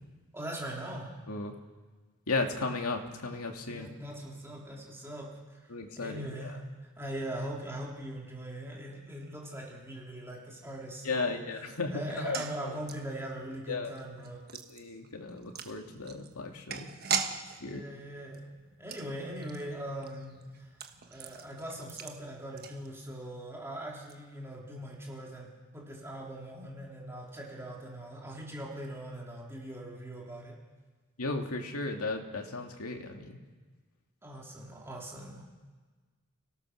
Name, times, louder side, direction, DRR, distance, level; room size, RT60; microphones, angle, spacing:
voice 1, 0.3-1.1 3.7-5.4 6.0-6.6 7.0-11.4 11.9-14.4 17.6-18.5 18.8-20.7 21.1-25.5 25.7-30.6 34.2-35.4, right 1 dB, 10° right, -2 dB, 3.6 m, -41 dB
voice 2, 1.3-1.6 2.3-3.9 5.7-6.5 11.0-12.8 13.7-13.9 14.7-16.9 17.6-17.8 31.2-33.4, left 3 dB, 85° left, 3 dB, 2.3 m, -35 dB
sound 1, 12.1-23.3 23.6-23.7 23.9-24.1, right 7 dB, 45° right, 1.4 m, -41 dB
29.0 x 17.5 x 6.4 m, 1.4 s
head